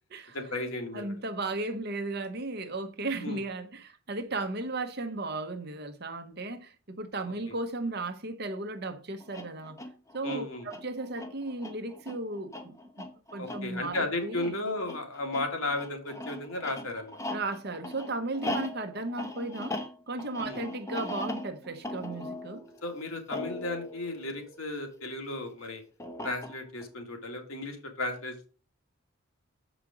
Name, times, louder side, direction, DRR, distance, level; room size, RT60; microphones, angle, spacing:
voice 1, 0.3-1.1 3.2-3.4 7.5-7.6 10.2-10.6 13.4-17.2 20.4-20.6 22.8-25.8 26.2-28.4, left 2 dB, 70° left, 1.8 m, -34 dB
voice 2, 0.9-9.8 10.1-14.6 17.3-22.6, right 2 dB, 45° right, 0.9 m, -35 dB
sound 1, 9.2-25.0 26.0-26.9, left 1 dB, 15° left, 0.8 m, -40 dB
7.3 x 5.0 x 4.9 m
head